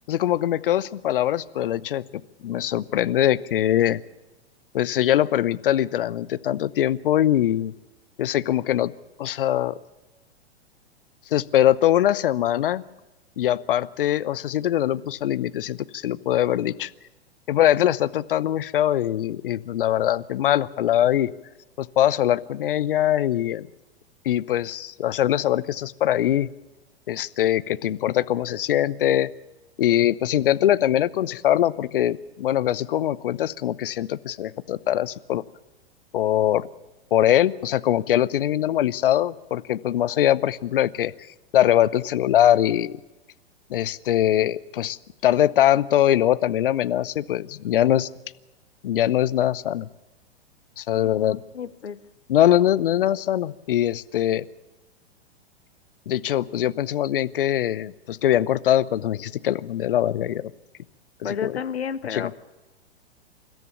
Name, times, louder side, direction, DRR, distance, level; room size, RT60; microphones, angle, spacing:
voice 1, 0.1-2.0 2.4-4.0 4.7-7.7 8.2-8.9 9.2-9.8 11.3-12.8 13.4-16.9 17.5-21.3 21.8-23.7 24.2-26.5 27.1-29.3 29.8-35.4 36.1-36.7 37.1-41.1 41.5-43.0 43.7-45.0 45.2-48.1 48.8-49.9 50.8-51.4 52.3-54.5 56.1-60.4 61.4-61.5 62.1-62.3, left 12 dB, 55° left, 17 dB, 0.8 m, -22 dB
voice 2, 51.2-52.0 61.2-62.4, left 7 dB, 70° left, 13 dB, 1.2 m, -31 dB
29.0 x 13.5 x 7.0 m, 1.1 s
figure-of-eight pair, 105°, 33 cm